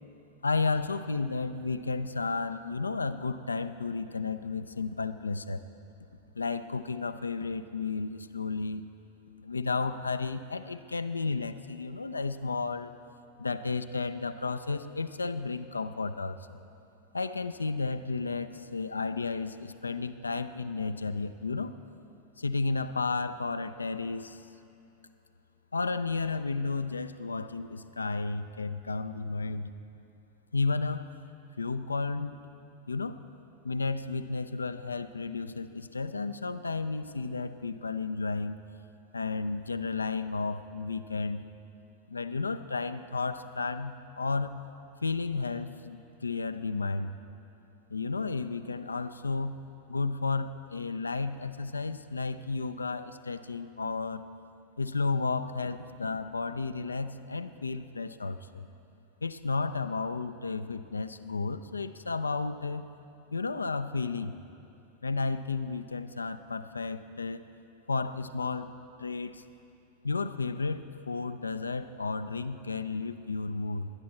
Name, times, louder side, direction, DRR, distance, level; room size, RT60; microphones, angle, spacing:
voice 1, 0.4-5.6 6.4-8.9 9.4-12.9 13.4-16.4 17.1-21.8 22.4-24.4 25.7-29.7 30.5-31.1 31.6-32.4 32.9-33.2 33.6-38.6 39.1-41.5 42.1-44.6 45.0-47.2 47.9-49.6 49.9-54.2 54.8-58.7 59.2-62.9 63.3-64.3 65.0-67.5 67.9-68.7 69.0-69.5 70.0-73.9, left 4 dB, 80° left, 11 dB, 0.4 m, -32 dB
20.0 x 10.5 x 4.2 m, 2.7 s
figure-of-eight pair, 90°, 0 cm